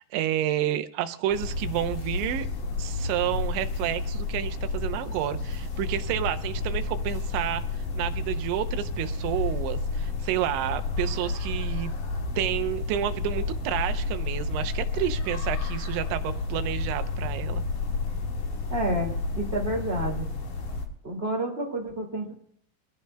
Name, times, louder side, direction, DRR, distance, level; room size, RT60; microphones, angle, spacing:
voice 1, 0.0-2.5 2.8-11.9 12.4-17.6, right 12 dB, 90° right, 9 dB, 3.1 m, -30 dB
sound 1, 1.3-20.8, left 3 dB, 55° left, 2.7 m, -31 dB
voice 2, 18.7-20.2 21.0-22.3, right 1 dB, 30° right, -1 dB, 1.0 m, -29 dB
24.0 x 16.0 x 2.2 m, 0.66 s
omnidirectional pair, 5.1 m